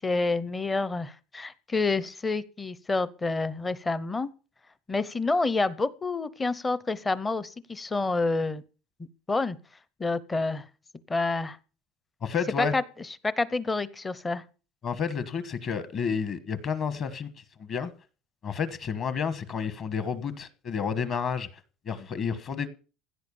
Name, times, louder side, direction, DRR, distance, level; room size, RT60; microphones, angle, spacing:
voice 1, 0.0-4.3 4.9-8.6 9.3-9.6 10.0-10.6 11.1-11.6 12.6-12.8 13.2-14.4, left 3 dB, 10° left, 0.7 m, -28 dB
voice 2, 12.2-12.7 14.8-17.3 17.6-17.9 18.4-21.5 21.8-22.7, left 6 dB, 30° left, 1.3 m, -30 dB
16.0 x 8.9 x 7.0 m
cardioid pair, 180°, 0 cm